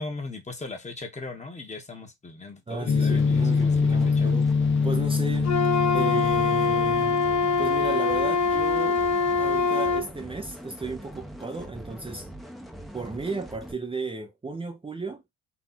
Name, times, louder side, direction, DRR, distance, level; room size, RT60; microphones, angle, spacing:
voice 1, 0.0-4.3, left 3 dB, 25° left, 1.5 m, -38 dB
voice 2, 2.7-4.5 4.8-5.6 5.9-9.0 9.4-12.3 12.9-15.2, right 3 dB, 20° right, 0.8 m, -34 dB
sound 1, 2.9-7.7, left 5 dB, 40° left, 0.6 m, -24 dB
sound 2, 3.1-13.7, right 1 dB, ahead, 1.0 m, -42 dB
Wind instrument woodwind instrument, 5.4-10.1, left 4 dB, 65° left, 0.9 m, -23 dB
4.3 x 2.7 x 4.1 m
cardioid pair, 90°, 30 cm